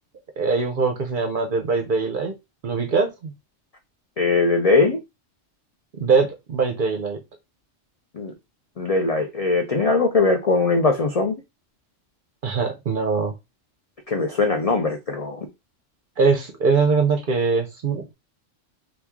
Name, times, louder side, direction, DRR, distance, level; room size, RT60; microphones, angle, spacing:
voice 1, 0.4-2.4 2.6-3.3 6.0-7.2 12.4-13.3 16.2-18.1, right 4 dB, 55° right, 4 dB, 0.6 m, -22 dB
voice 2, 4.2-5.0 8.1-8.3 8.8-11.3 14.1-15.5, left 3 dB, 75° left, 4 dB, 0.3 m, -20 dB
3.0 x 2.3 x 3.5 m, 0.22 s
omnidirectional pair, 1.3 m